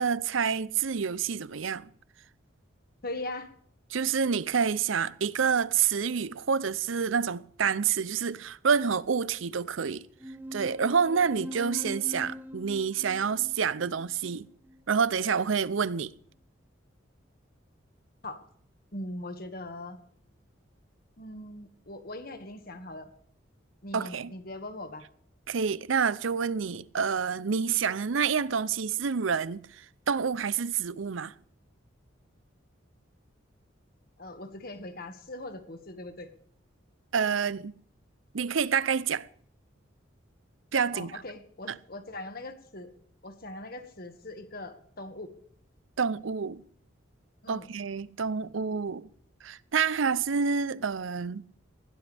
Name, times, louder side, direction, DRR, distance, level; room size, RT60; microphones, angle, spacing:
voice 1, 0.0-1.9 3.9-10.0 10.5-14.4 14.9-16.1 23.9-24.3 25.5-29.6 30.1-31.3 37.1-37.7 38.3-39.2 40.7-41.1 46.0-46.6 47.5-49.1 49.4-51.4, right 6 dB, 80° right, 0.6 m, -28 dB
voice 2, 3.0-3.5 18.2-18.4 18.9-20.0 21.2-23.1 23.8-25.0 34.2-36.3 40.9-42.9 43.2-45.3 47.4-47.7, left 2 dB, 50° left, 1.9 m, -40 dB
sound 1, 10.2-15.2, equal, 10° right, 0.7 m, -43 dB
20.0 x 17.5 x 3.5 m
head